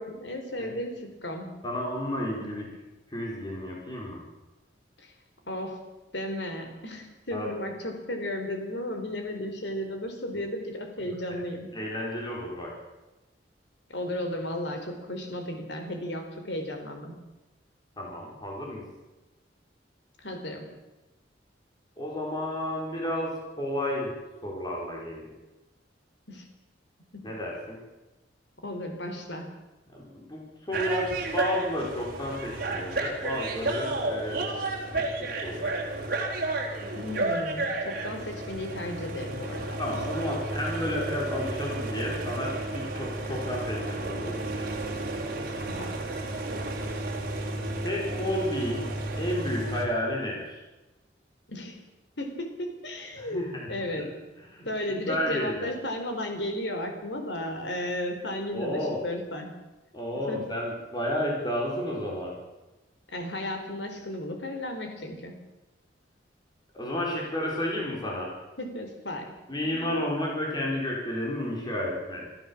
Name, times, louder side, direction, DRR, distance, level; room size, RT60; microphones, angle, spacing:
voice 1, 0.0-1.6 5.0-5.1 5.5-11.7 13.9-17.1 20.2-20.8 26.3-26.5 27.1-27.4 28.6-29.6 36.9-40.0 45.7-46.1 51.5-51.9 52.2-54.2 54.6-59.5 60.3-60.6 63.1-65.4 68.6-69.9, left 1 dB, 70° left, 5 dB, 4.2 m, -34 dB
voice 2, 1.6-2.7 3.1-4.2 7.3-7.5 11.7-12.7 18.0-18.8 22.0-24.1 24.4-25.3 27.2-27.8 29.9-35.7 39.8-44.7 47.8-48.9 49.2-50.6 53.2-53.4 54.0-54.1 54.5-55.7 58.5-59.0 59.9-62.4 66.7-68.3 69.5-72.2, left 1 dB, 25° left, -2 dB, 5.1 m, -32 dB
sound 1, 30.7-49.9, right 2 dB, 50° right, 3.9 m, -32 dB
25.5 x 14.5 x 7.4 m, 1.1 s
head